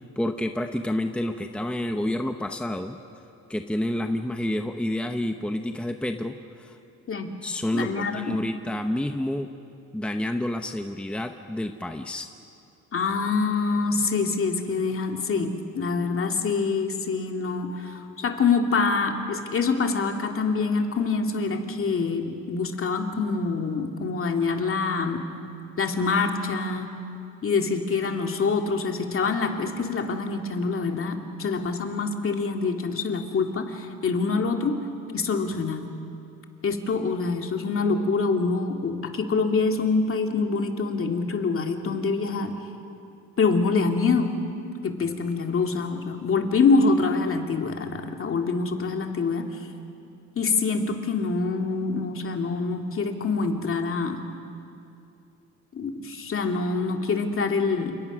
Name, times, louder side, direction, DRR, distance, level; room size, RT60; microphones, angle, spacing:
voice 1, 0.2-3.0 3.5-6.8 7.4-9.5 9.9-12.3, left 1 dB, 5° left, 6 dB, 0.9 m, -29 dB
voice 2, 7.7-8.4 12.9-25.2 25.8-26.9 27.4-34.8 35.1-35.9 36.6-42.5 43.4-44.4 44.8-49.5 50.4-54.3 55.7-58.0, left 4 dB, 45° left, 4 dB, 2.4 m, -25 dB
29.5 x 28.0 x 6.2 m, 2.7 s
cardioid pair, 125°, 30 cm